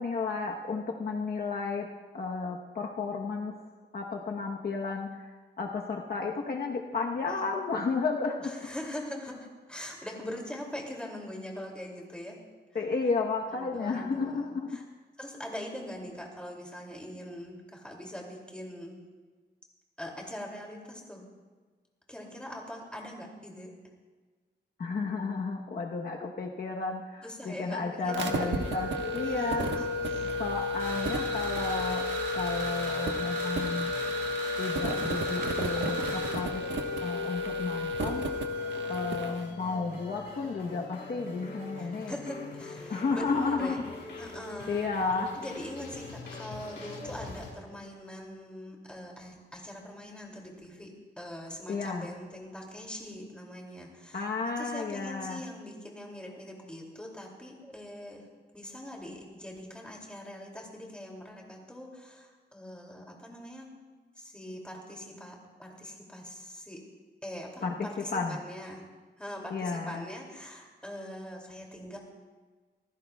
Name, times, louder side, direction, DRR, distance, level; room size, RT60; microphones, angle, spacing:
voice 1, 0.0-1.9 2.1-3.5 3.9-8.7 12.7-14.8 24.8-29.7 30.4-32.0 32.3-33.9 34.6-36.6 37.0-38.3 38.9-42.1 42.9-43.8 44.7-45.3 51.7-52.1 54.1-55.4 67.6-68.4 69.5-70.0, left 4 dB, 55° left, 0 dB, 1.1 m, -32 dB
voice 2, 8.4-12.4 13.5-14.8 15.2-19.0 20.0-21.2 22.1-23.7 27.2-28.5 29.2-30.4 41.8-43.8 44.2-44.9 45.3-54.3 54.6-58.2 58.5-63.7 64.2-66.8 67.2-68.8 69.2-72.0, left 1 dB, 5° left, -1 dB, 2.6 m, -42 dB
sound 1, 28.1-39.4, left 1 dB, 85° right, 1.3 m, -32 dB
sound 2, 28.2-47.5, left 3 dB, 75° left, 3.9 m, -44 dB
sound 3, 30.8-36.3, right 2 dB, 50° right, 5.2 m, -38 dB
26.5 x 15.5 x 2.3 m, 1.4 s
wide cardioid pair, 160°, 18 cm